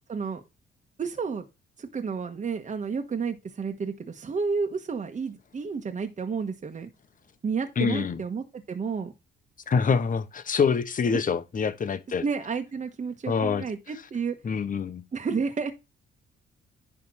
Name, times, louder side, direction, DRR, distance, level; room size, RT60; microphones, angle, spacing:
voice 1, 0.1-0.4 1.0-1.4 1.8-6.9 7.4-9.1 12.2-14.3 15.1-15.7, right 5 dB, 40° right, 1.5 m, -31 dB
voice 2, 7.8-8.2 9.7-12.2 13.3-13.6 14.4-15.0, left 6 dB, 40° left, 1.3 m, -25 dB
10.5 x 3.6 x 6.4 m
cardioid pair, 90°, 20 cm